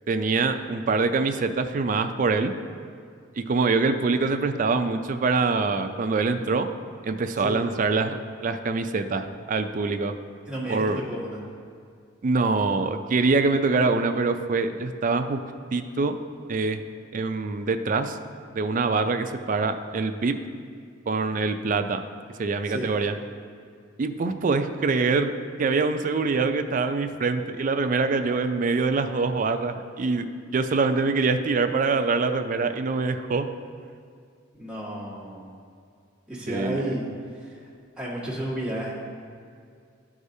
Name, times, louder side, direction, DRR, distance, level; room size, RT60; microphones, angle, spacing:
voice 1, 0.1-2.5 3.4-6.7 7.0-10.1 10.7-11.0 12.2-15.4 15.7-16.2 16.5-16.8 17.1-18.2 18.5-20.4 21.1-22.0 22.4-23.2 24.0-25.3 25.6-30.3 30.5-33.5 36.5-36.8, right 4 dB, 45° right, 8 dB, 0.4 m, -24 dB
voice 2, 10.5-11.4 22.7-22.9 34.6-35.5 36.3-37.0 37.3-37.7 38.0-39.0, right 1 dB, 5° right, -7 dB, 1.7 m, -32 dB
11.5 x 4.8 x 2.7 m, 2.3 s
head